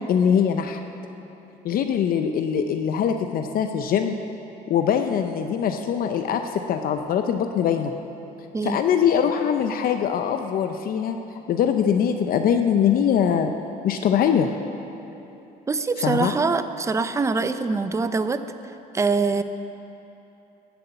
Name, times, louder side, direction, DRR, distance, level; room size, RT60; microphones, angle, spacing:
voice 1, 0.1-0.8 1.6-4.2 4.7-7.9 8.6-11.2 11.5-13.5 13.8-14.5 16.0-16.3, left 8 dB, 60° left, 6 dB, 0.7 m, -22 dB
voice 2, 15.7-18.4 18.9-19.4, right 4 dB, 15° right, 10 dB, 0.5 m, -23 dB
13.0 x 7.9 x 8.1 m, 3.0 s
cardioid pair, 110°, 17 cm